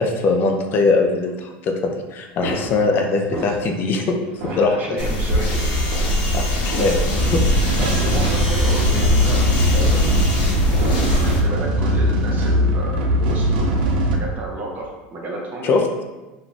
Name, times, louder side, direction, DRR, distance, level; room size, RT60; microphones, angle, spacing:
voice 1, 0.0-4.1 4.6-5.0 6.3-7.7 15.6-15.8, left 3 dB, 45° left, 3 dB, 0.4 m, -21 dB
sound 1, 2.4-3.9 4.3-5.0 5.9-6.1 6.7-7.2 7.7-7.8 10.4-11.4 11.7-12.1, right 1 dB, 60° right, 1.2 m, -31 dB
voice 2, 4.5-5.6 7.7-9.4 9.7-10.1 11.1-15.7, right 2 dB, 35° right, -2 dB, 0.7 m, -31 dB
sound 2, 5.0-11.4, equal, 80° left, 0.8 m, -22 dB
sound 3, 7.1-14.2, equal, 90° right, 0.4 m, -20 dB
2.5 x 2.4 x 3.1 m, 1.1 s
supercardioid pair, 115°, 5 cm